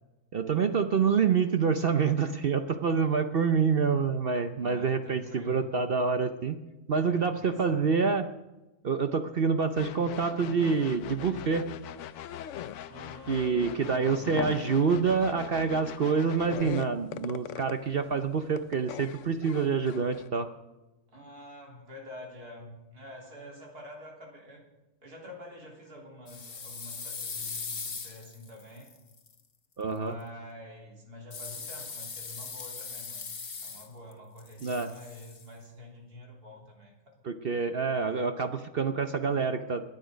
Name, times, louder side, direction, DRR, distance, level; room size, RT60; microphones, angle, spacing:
voice 1, 0.3-6.6 6.9-8.3 8.8-11.7 13.3-20.5 29.8-30.1 34.6-34.9 37.2-39.8, right 5 dB, 50° right, 8 dB, 0.8 m, -27 dB
voice 2, 4.6-5.7 7.0-7.9 12.9-14.3 18.1-18.4 21.1-24.6 25.0-28.9 29.8-33.3 33.6-37.2, left 1 dB, 80° right, 0 dB, 3.7 m, -47 dB
sound 1, 9.8-16.6, left 11 dB, 80° left, 1.2 m, -43 dB
sound 2, 10.7-11.0 11.3-13.0 13.5-18.1 18.4-20.3, left 10 dB, 65° left, 0.8 m, -40 dB
sound 3, 26.3-29.3 31.3-34.1 34.4-35.5, left 5 dB, 40° left, 1.3 m, -40 dB
21.5 x 9.3 x 5.1 m, 1.0 s
omnidirectional pair, 1.6 m